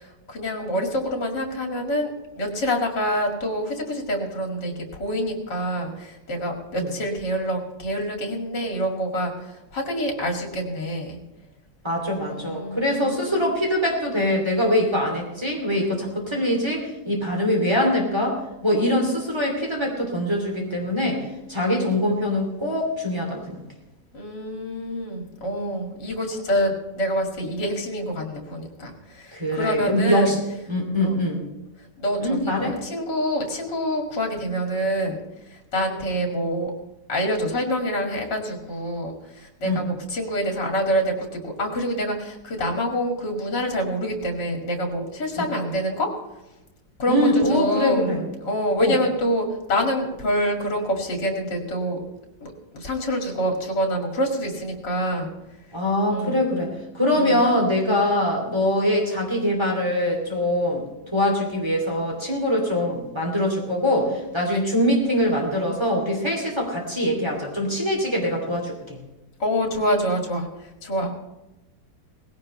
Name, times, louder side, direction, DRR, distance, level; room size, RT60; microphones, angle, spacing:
voice 1, 0.0-11.2 12.2-13.3 24.1-30.3 31.0-31.2 32.0-35.2 35.5-36.7 37.1-46.1 47.0-52.0 52.4-55.3 56.1-56.4 57.1-57.4 69.4-71.1, equal, 70° left, 2 dB, 3.0 m, -26 dB
voice 2, 11.8-21.2 21.5-23.6 29.3-30.4 30.7-31.4 32.2-32.8 39.6-39.9 47.1-48.2 48.8-49.0 55.7-69.0 71.0-71.1, left 1 dB, 15° right, -2 dB, 2.9 m, -23 dB
18.5 x 16.5 x 3.3 m, 0.98 s
omnidirectional pair, 2.0 m